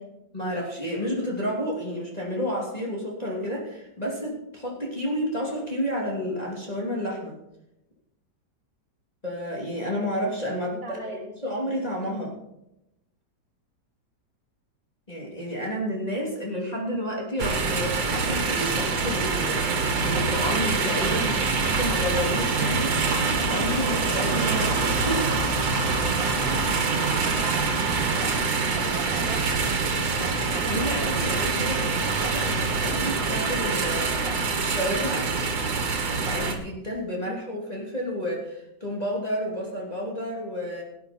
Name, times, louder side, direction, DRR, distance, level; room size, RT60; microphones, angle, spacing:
voice 1, 0.3-7.3 9.2-12.3 15.1-23.0 23.5-25.3 30.5-35.3 36.3-40.8, equal, 20° left, -4 dB, 3.1 m, -31 dB
voice 2, 10.6-11.4 27.2-29.7 37.1-37.5, equal, 55° right, -1 dB, 4.4 m, -40 dB
sound 1, 17.4-36.5, right 4 dB, 80° right, 2.4 m, -25 dB
18.5 x 9.4 x 4.5 m, 0.85 s
omnidirectional pair, 2.0 m